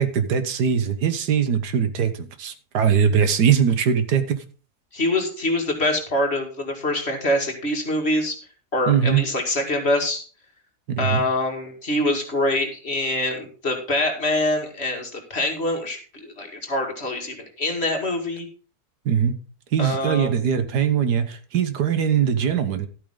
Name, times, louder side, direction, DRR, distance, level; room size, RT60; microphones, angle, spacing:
voice 1, 0.0-4.4 8.9-9.2 10.9-11.2 19.0-19.4 19.7-22.9, right 7 dB, 90° right, 11 dB, 1.7 m, -21 dB
voice 2, 4.9-8.4 8.7-10.2 11.0-18.5 19.8-20.3, left 1 dB, 40° left, 3 dB, 2.3 m, -24 dB
12.5 x 8.7 x 3.8 m, 0.37 s
omnidirectional pair, 1.7 m